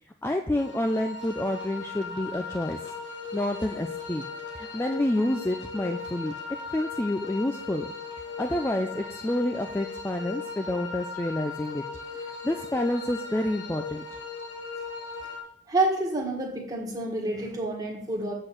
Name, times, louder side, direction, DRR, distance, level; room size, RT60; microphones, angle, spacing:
voice 1, 0.2-2.8 3.3-4.2 4.5-6.3 6.7-7.9 8.4-11.8 12.2-14.1, left 1 dB, 10° left, 5 dB, 0.3 m, -28 dB
sound 1, 0.5-15.4, left 4 dB, 60° left, 1.4 m, -38 dB
voice 2, 15.7-18.3, right 2 dB, 20° right, -2 dB, 1.7 m, -28 dB
8.1 x 4.3 x 6.4 m, 0.69 s
head